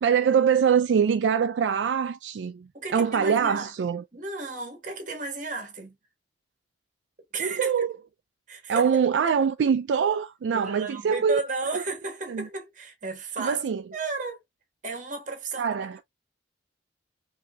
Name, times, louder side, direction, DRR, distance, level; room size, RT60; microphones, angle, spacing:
voice 1, 0.0-2.7 2.9-4.0 7.4-7.9 8.7-11.4 11.7-11.8 12.3-12.5 13.4-13.8 15.6-16.0, right 7 dB, 75° right, 0.3 m, -23 dB
voice 2, 2.7-6.0 7.3-7.7 8.5-9.0 10.5-13.6 13.9-14.4 14.8-15.7, right 3 dB, 45° right, 1.4 m, -33 dB
4.7 x 2.8 x 2.2 m
head